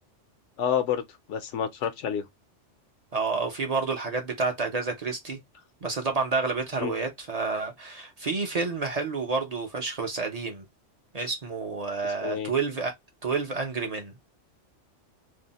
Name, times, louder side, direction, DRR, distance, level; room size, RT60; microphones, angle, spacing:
voice 1, 0.6-1.0 1.3-2.2 6.8-6.9 12.2-12.5, left 8 dB, 80° left, 0.9 m, -28 dB
voice 2, 3.1-5.4 5.8-10.7 11.1-12.9 13.2-14.2, right 4 dB, 45° right, 0.5 m, -29 dB
2.7 x 2.0 x 3.8 m
omnidirectional pair, 1.2 m